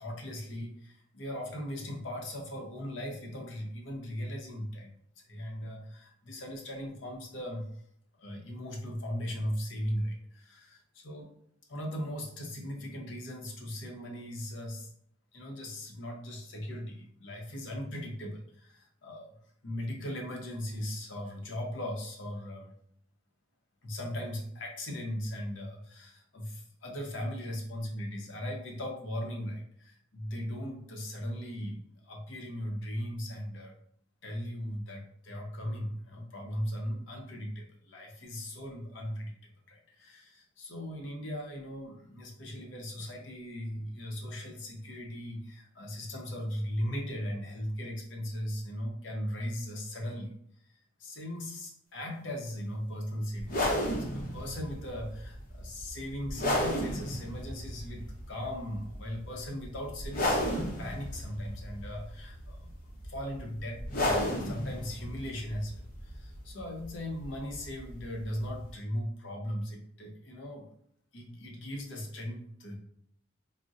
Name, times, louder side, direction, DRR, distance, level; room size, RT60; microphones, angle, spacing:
voice 1, 0.0-4.9 5.3-7.7 8.2-11.3 11.7-14.9 15.3-22.7 23.8-33.8 34.2-50.3 51.0-70.7 71.1-72.8, equal, 75° left, 1 dB, 0.7 m, -38 dB
sound 1, 53.4-68.7, left 1 dB, 45° left, 0.7 m, -34 dB
3.9 x 2.0 x 2.4 m, 0.68 s
head